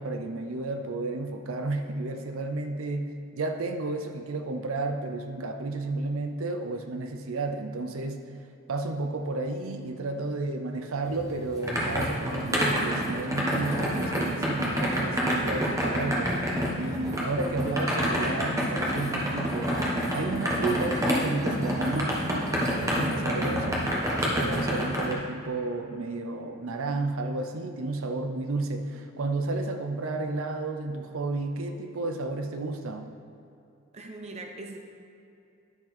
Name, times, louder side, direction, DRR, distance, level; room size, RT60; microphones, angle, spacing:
voice 1, 0.0-8.2 8.7-19.9 20.1-33.1, right 2 dB, 75° right, 5 dB, 0.6 m, -32 dB
sound 1, 11.1-25.1, equal, 15° right, 1.3 m, -28 dB
voice 2, 33.9-34.8, right 2 dB, 30° right, 3 dB, 0.8 m, -40 dB
10.5 x 6.4 x 4.3 m, 2.6 s
head